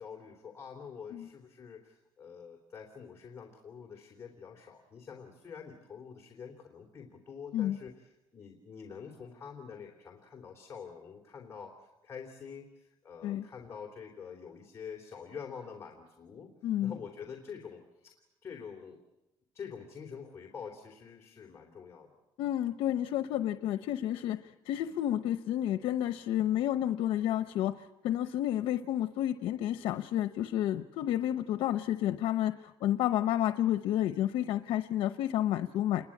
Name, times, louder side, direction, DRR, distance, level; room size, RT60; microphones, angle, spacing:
voice 1, 0.0-16.5 16.8-19.0 19.5-22.2, left 6 dB, 30° left, 1 dB, 3.1 m, -46 dB
voice 2, 16.6-16.9 22.4-24.4 24.7-36.1, left 12 dB, 85° left, 11 dB, 0.8 m, -30 dB
29.0 x 22.0 x 8.6 m, 0.99 s
cardioid pair, 130°, 9 cm